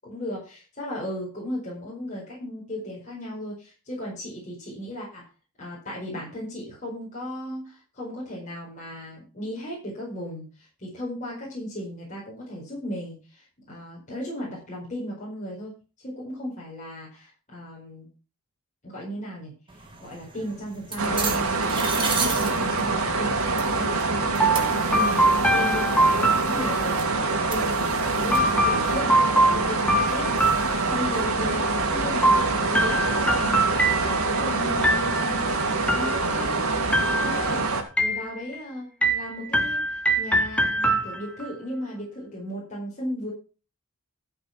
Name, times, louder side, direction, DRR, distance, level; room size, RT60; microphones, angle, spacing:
voice 1, 0.0-5.3 5.6-15.7 16.0-18.1 18.8-19.5 20.0-27.2 27.5-33.6 34.0-35.5 35.9-37.7 38.0-43.3, left 1 dB, 35° left, -5 dB, 4.8 m, -36 dB
sound 1, 19.7-31.2, right 4 dB, 25° right, 2.3 m, -36 dB
sound 2, 21.0-37.8, right 3 dB, 70° right, 2.4 m, -25 dB
sound 3, 24.4-27.1 28.3-31.3 32.2-34.4 34.8-35.4 35.9-36.6 36.9-37.6 38.0-38.6 39.0-41.5, right 1 dB, 5° left, 1.5 m, -24 dB
13.0 x 6.3 x 5.9 m, 0.35 s
head